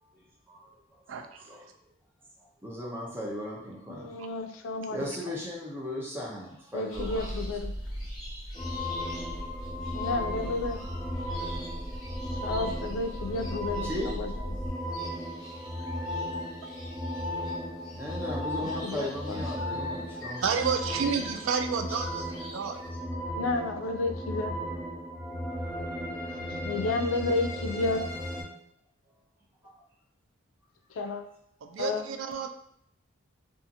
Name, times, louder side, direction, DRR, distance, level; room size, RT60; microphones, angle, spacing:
voice 1, 0.0-1.0 1.5-1.7 2.4-4.1 4.9-7.3 13.8-14.2 17.3-17.4 17.9-20.6 21.9-22.2 28.5-28.6 29.6-29.7 31.6-31.8, left 1 dB, 10° right, -3 dB, 0.5 m, -37 dB
voice 2, 1.1-1.5 20.4-22.9 26.3-26.6 31.6-32.5, right 6 dB, 80° right, 6 dB, 0.3 m, -31 dB
voice 3, 3.9-5.0 5.3-5.4 6.7-7.7 9.9-10.8 12.2-14.5 18.6-19.5 23.4-24.5 26.6-28.0 30.9-31.2 31.8-32.1, left 3 dB, 85° left, 6 dB, 0.3 m, -32 dB
sound 1, 6.9-22.9, equal, 20° left, 0.8 m, -49 dB
sound 2, 6.9-14.7, equal, 60° right, 0.8 m, -39 dB
sound 3, 8.5-28.4, equal, 35° right, 1.0 m, -36 dB
2.7 x 2.4 x 2.5 m, 0.68 s
head